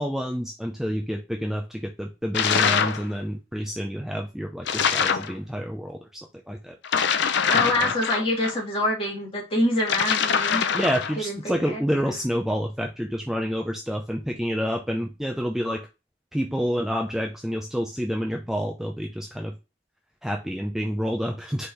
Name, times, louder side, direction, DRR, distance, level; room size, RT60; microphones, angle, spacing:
voice 1, 0.0-6.2 6.5-7.1 7.5-7.9 10.7-15.8 16.3-19.5 20.2-21.7, equal, ahead, 2 dB, 0.5 m, -28 dB
sound 1, 2.3-3.0 4.6-5.3 6.8-8.5 9.8-11.2, left 7 dB, 65° left, 0.5 m, -23 dB
voice 2, 7.5-10.6 11.2-11.8, left 1 dB, 30° left, -1 dB, 1.7 m, -26 dB
4.4 x 3.5 x 3.2 m, 0.27 s
head